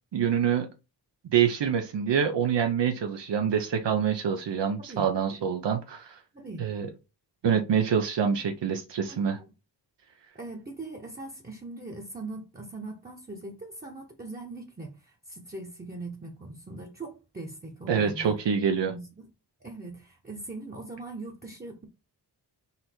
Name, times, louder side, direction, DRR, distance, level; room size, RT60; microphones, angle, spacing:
voice 1, 0.1-0.7 1.3-6.2 6.6-6.9 7.4-9.4 17.9-18.9, right 7 dB, 80° right, 0.6 m, -26 dB
voice 2, 4.8-5.1 6.3-6.7 9.1-9.4 10.3-18.4 18.8-19.3 19.6-21.9, right 2 dB, 20° right, 0.8 m, -41 dB
4.1 x 2.6 x 4.3 m
wide cardioid pair, 95°, 42 cm